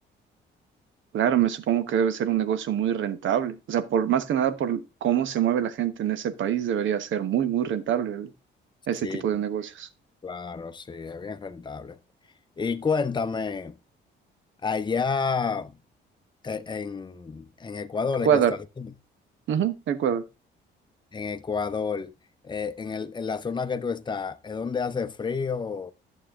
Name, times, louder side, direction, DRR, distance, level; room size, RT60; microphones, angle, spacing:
voice 1, 1.1-8.3 8.9-9.9 18.2-18.5 19.5-20.2, right 9 dB, 75° right, 1.2 m, -25 dB
voice 2, 10.2-12.0 12.6-13.8 14.6-15.8 16.4-18.4 18.8-18.9 21.1-22.1 22.4-25.9, left 5 dB, 25° left, 0.8 m, -30 dB
11.5 x 7.3 x 3.6 m
cardioid pair, 90°, 20 cm